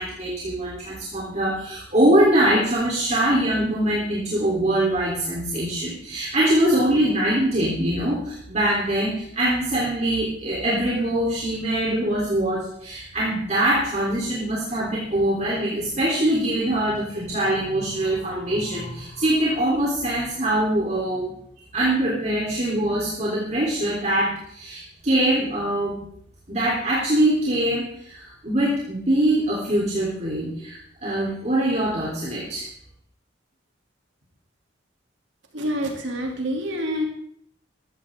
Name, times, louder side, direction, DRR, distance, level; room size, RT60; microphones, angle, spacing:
voice 1, 0.0-21.2 21.7-26.0 26.5-32.7, right 1 dB, 35° right, -5 dB, 3.7 m, -23 dB
voice 2, 35.5-37.0, equal, 75° right, 1 dB, 3.1 m, -27 dB
15.5 x 14.5 x 3.8 m, 0.65 s
head